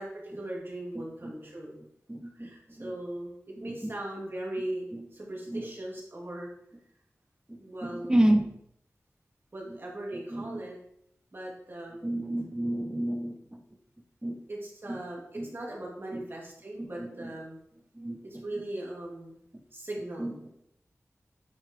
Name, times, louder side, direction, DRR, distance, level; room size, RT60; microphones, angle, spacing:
voice 1, 0.0-1.8 2.3-6.5 7.6-8.1 9.5-10.8 11.3-12.2 14.5-17.6 18.2-19.4 19.7-20.4, right 1 dB, 45° right, -3 dB, 2.8 m, -39 dB
voice 2, 0.9-1.3 2.1-2.9 3.6-3.9 4.9-5.0 5.5-5.7 7.5-8.5 9.7-9.8 10.1-10.6 12.0-13.6 14.2-14.4 14.9-15.0 15.3-15.5 16.1-16.2 16.8-17.3 17.9-18.4 20.2-20.5, right 1 dB, 15° right, 4 dB, 1.1 m, -31 dB
9.3 x 5.6 x 3.7 m, 0.76 s
wide cardioid pair, 60°, 5 cm